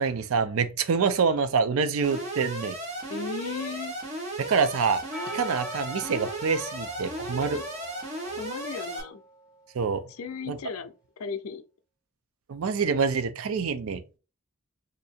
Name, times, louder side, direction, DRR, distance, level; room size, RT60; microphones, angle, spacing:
voice 1, 0.0-2.8 4.5-5.0 5.3-7.6 9.7-10.0 10.5-10.6 12.5-14.0, right 5 dB, 80° right, 0.5 m, -26 dB
Alarm, 2.0-9.0, right 1 dB, 30° right, 1.1 m, -35 dB
voice 2, 3.1-3.9 7.4-7.6 8.4-9.2 10.1-11.6, left 5 dB, 80° left, 0.5 m, -36 dB
Percussion, 5.1-9.7, equal, 5° right, 1.0 m, -44 dB
2.7 x 2.6 x 4.1 m
head